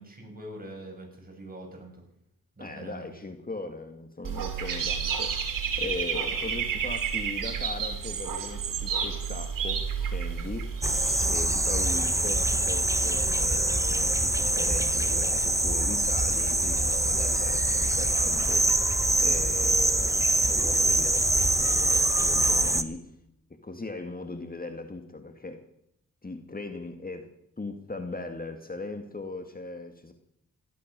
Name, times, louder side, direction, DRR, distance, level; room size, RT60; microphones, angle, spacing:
voice 1, 0.0-2.0 2.6-3.1, right 1 dB, 25° right, 1 dB, 7.7 m, -43 dB
voice 2, 2.6-5.5 5.8-10.8 11.3-23.1 23.6-25.6 26.2-27.3 27.6-30.1, left 3 dB, 25° left, 6 dB, 2.1 m, -39 dB
Dog / Bird, 4.2-11.3, right 7 dB, 75° right, 2.9 m, -30 dB
sound 1, 10.8-22.8, right 1 dB, 10° right, 1.4 m, -24 dB
16.5 x 12.5 x 6.9 m, 0.74 s
cardioid pair, 50°, 33 cm